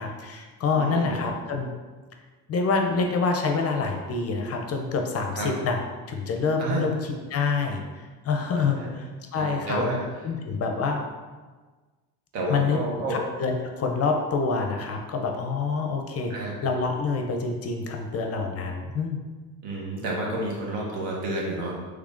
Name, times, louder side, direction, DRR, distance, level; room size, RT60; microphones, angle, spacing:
voice 1, 0.0-1.7 2.5-5.8 6.1-7.0 7.3-9.8 10.2-11.1 12.5-12.8 13.1-16.3 16.6-19.2, left 4 dB, 40° left, 3 dB, 0.4 m, -27 dB
voice 2, 0.7-1.2 5.3-5.5 6.6-6.9 8.6-8.9 9.3-10.0 12.3-13.2 16.3-16.6 19.6-21.8, right 1 dB, 80° right, -2 dB, 1.0 m, -30 dB
3.5 x 3.2 x 2.5 m, 1.3 s
cardioid pair, 95°, 41 cm